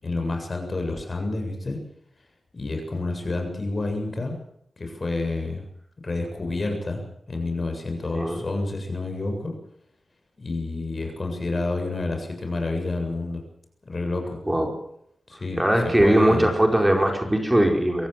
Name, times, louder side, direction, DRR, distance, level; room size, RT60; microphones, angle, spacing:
voice 1, 0.0-1.8 2.5-4.4 4.8-5.7 6.0-7.0 7.3-9.6 10.4-13.4 13.8-14.4 15.3-16.5, left 2 dB, 45° left, 4 dB, 7.6 m, -29 dB
voice 2, 15.6-18.1, right 1 dB, 15° right, 2 dB, 4.9 m, -20 dB
24.5 x 16.5 x 7.7 m, 0.71 s
wide cardioid pair, 90°, 0 cm